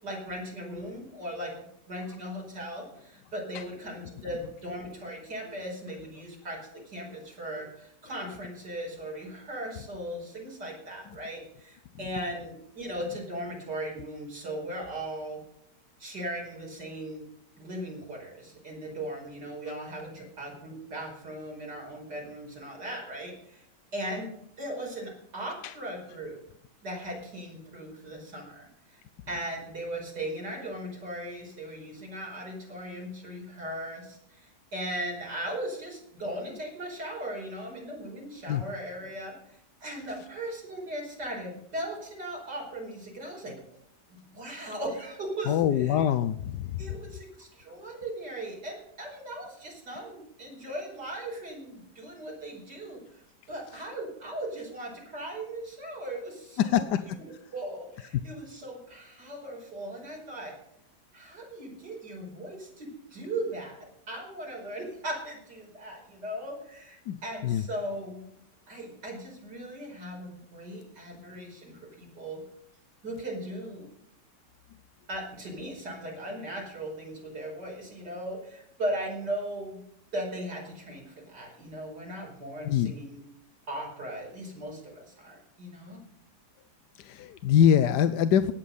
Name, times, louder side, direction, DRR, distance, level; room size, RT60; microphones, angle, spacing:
voice 1, 0.0-1.5 1.9-6.6 6.8-15.4 16.0-17.2 17.6-23.6 23.9-24.3 24.6-26.4 26.8-29.0 29.3-43.6 44.1-46.0 46.8-53.2 53.5-56.8 57.2-57.3 57.5-60.5 61.1-68.3 68.7-72.4 73.0-73.9 75.1-79.8 80.1-83.2 83.7-86.0, right 1 dB, 75° right, -2 dB, 5.8 m, -38 dB
voice 2, 45.5-47.0 56.6-57.0 67.1-67.6 82.6-82.9 87.0-88.5, left 9 dB, 80° left, 11 dB, 1.3 m, -24 dB
18.0 x 8.5 x 5.4 m, 0.72 s
omnidirectional pair, 1.8 m